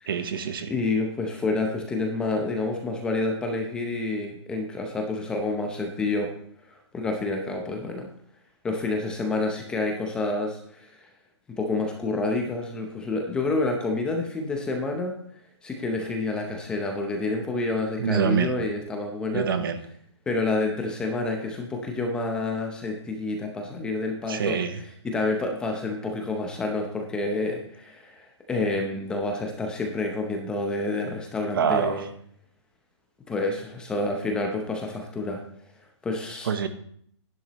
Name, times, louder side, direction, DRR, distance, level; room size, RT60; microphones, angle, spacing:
voice 1, 0.1-0.7 18.0-18.5 19.3-19.8 24.3-24.8 31.5-32.0 36.5-36.7, right 7 dB, 50° right, 10 dB, 1.0 m, -25 dB
voice 2, 0.7-6.3 6.9-8.1 8.6-11.0 11.6-15.2 15.6-19.5 20.3-24.6 25.0-32.1 33.3-35.4 36.0-36.5, left 2 dB, 5° left, 2 dB, 0.7 m, -28 dB
11.0 x 11.0 x 3.0 m, 0.63 s
hypercardioid pair, 165°, 15 cm